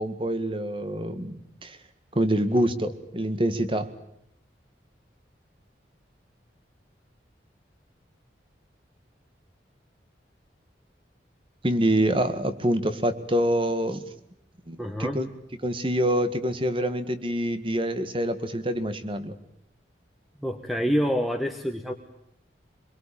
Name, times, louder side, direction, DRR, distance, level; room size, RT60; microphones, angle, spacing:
voice 1, 0.0-1.8 2.2-3.9 11.6-14.0 14.7-15.3 15.6-19.4, right 1 dB, 30° right, 11 dB, 1.9 m, -26 dB
voice 2, 14.8-15.2 20.4-21.9, equal, ahead, 5 dB, 1.5 m, -27 dB
25.5 x 23.0 x 8.8 m, 0.75 s
head